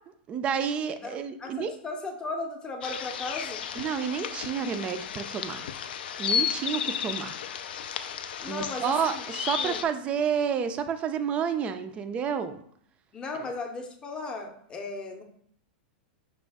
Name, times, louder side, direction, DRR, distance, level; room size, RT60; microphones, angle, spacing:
voice 1, 0.3-1.7 3.8-5.7 6.2-7.4 8.4-12.6 13.4-13.5, right 7 dB, 25° right, 9 dB, 0.3 m, -30 dB
voice 2, 1.0-3.6 8.4-9.3 9.6-9.8 13.1-15.2, left 3 dB, 15° left, 3 dB, 0.6 m, -36 dB
sound 1, 2.8-9.8, left 8 dB, 80° left, 0.3 m, -33 dB
5.1 x 2.4 x 3.5 m, 0.65 s
supercardioid pair, 145°, 5 cm